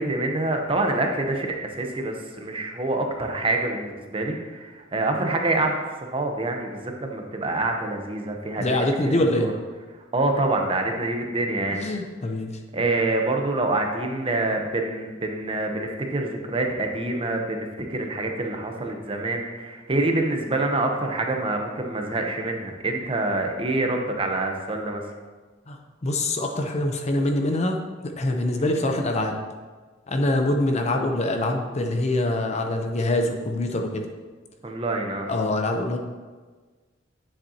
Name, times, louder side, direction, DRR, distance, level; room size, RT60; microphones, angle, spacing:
voice 1, 0.0-5.7 6.0-9.5 10.1-11.8 12.7-25.0 34.6-35.3, right 2 dB, 25° right, 3 dB, 0.8 m, -26 dB
voice 2, 8.6-9.5 11.7-12.6 25.7-25.8 26.0-27.8 28.2-29.3 30.1-34.1 35.3-36.0, left 1 dB, 35° left, 4 dB, 0.6 m, -24 dB
9.7 x 7.4 x 2.8 m, 1.4 s
head